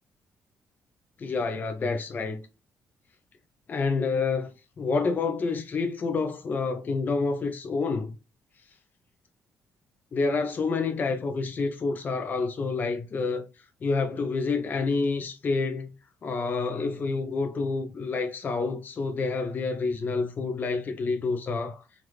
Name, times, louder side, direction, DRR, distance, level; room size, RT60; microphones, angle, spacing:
voice 1, 1.2-2.4 3.7-4.5 4.8-8.1 10.1-13.5 13.8-15.9 16.2-21.8, left 4 dB, 35° left, 0.5 m, -28 dB
3.3 x 2.5 x 2.9 m
cardioid pair, 135°, 5 cm